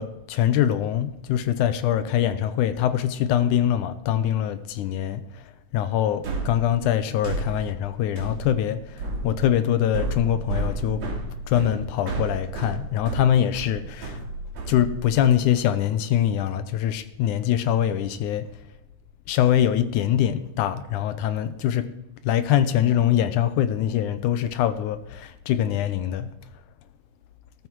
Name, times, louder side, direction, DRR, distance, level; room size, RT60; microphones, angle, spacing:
voice 1, 0.0-11.0 11.5-14.2 14.7-18.5 19.3-21.8 22.2-26.3, left 10 dB, 80° left, 12 dB, 2.1 m, -23 dB
sound 1, 6.2-15.4, right 2 dB, 55° right, 3.6 m, -32 dB
13.5 x 13.0 x 4.6 m, 0.91 s
omnidirectional pair, 3.8 m